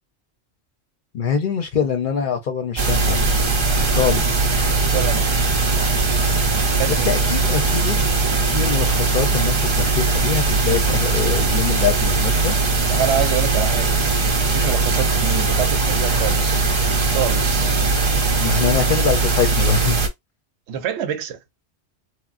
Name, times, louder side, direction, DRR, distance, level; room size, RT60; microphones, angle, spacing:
voice 1, 1.1-3.3 3.9-4.4 6.9-8.1 8.5-12.6 18.4-20.0, left 6 dB, 55° left, 0.7 m, -23 dB
sound 1, 2.8-20.1, right 3 dB, 40° right, 0.4 m, -19 dB
voice 2, 4.9-5.3 6.7-7.2 12.9-14.1 14.4-16.6 17.0-17.8 20.7-21.4, right 9 dB, 75° right, 0.8 m, -26 dB
3.1 x 2.1 x 2.4 m
omnidirectional pair, 1.2 m